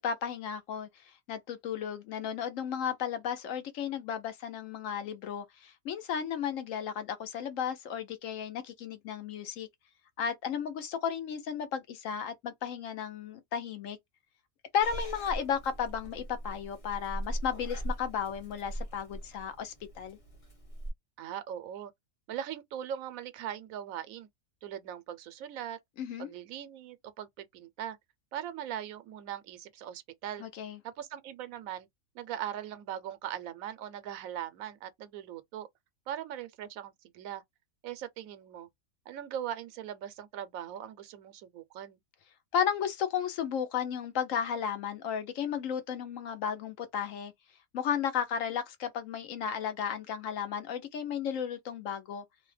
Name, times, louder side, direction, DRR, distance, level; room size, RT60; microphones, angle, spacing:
voice 1, 0.0-9.7 10.2-14.0 14.7-20.2 26.0-26.3 30.4-30.8 42.5-47.3 47.7-52.2, left 8 dB, 75° left, 1.1 m, -34 dB
Purr / Meow, 14.8-20.9, right 1 dB, 30° left, 0.9 m, -40 dB
voice 2, 21.2-21.9 22.3-24.3 24.6-25.8 26.2-28.0 28.3-30.4 30.8-31.9 32.1-35.7 36.1-37.4 37.8-38.7 39.1-42.0, right 10 dB, 90° right, 1.0 m, -40 dB
2.8 x 2.1 x 3.2 m
omnidirectional pair, 1.4 m